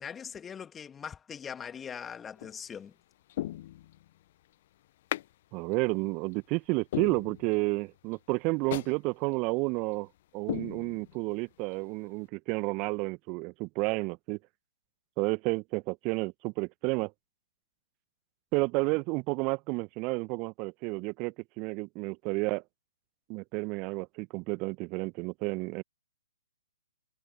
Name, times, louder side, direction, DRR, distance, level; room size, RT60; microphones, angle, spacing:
voice 1, 0.0-2.9, left 7 dB, 15° left, 2.5 m, -41 dB
sound 1, 2.4-2.7 3.3-4.2 5.1-5.3 5.7-5.8 6.3-6.4 6.9-7.8 8.1-8.2 8.7-9.0 9.3-9.4 9.9-10.1 10.5-11.4 11.7-11.8, left 14 dB, 40° left, 0.7 m, -37 dB
voice 2, 5.5-10.1 10.3-14.4 15.2-17.1 18.5-22.6 23.3-25.8, right 28 dB, 30° right, 1.2 m, -31 dB
figure-of-eight pair, 125°, 0 cm